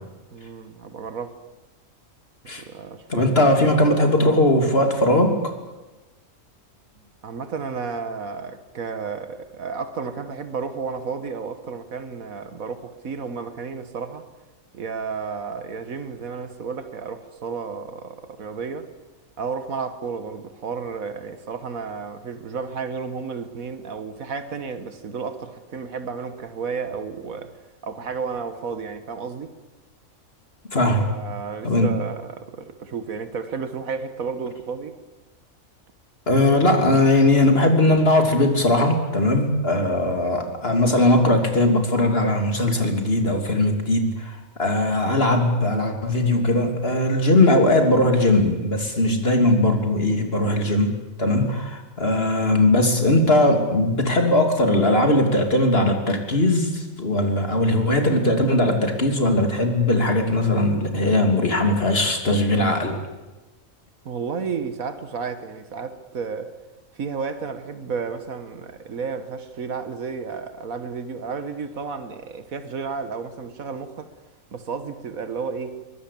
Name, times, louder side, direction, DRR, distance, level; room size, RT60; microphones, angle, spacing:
voice 1, 0.3-1.4 2.6-3.5 7.2-14.3 14.7-18.9 19.4-27.6 27.8-29.5 30.9-34.9 64.0-66.5 66.9-74.1 74.5-75.8, right 5 dB, 85° right, 1.9 m, -32 dB
voice 2, 3.1-5.5 30.7-31.1 31.6-31.9 36.3-63.0, left 1 dB, 45° left, 3.3 m, -19 dB
22.5 x 22.0 x 8.5 m
omnidirectional pair, 1.4 m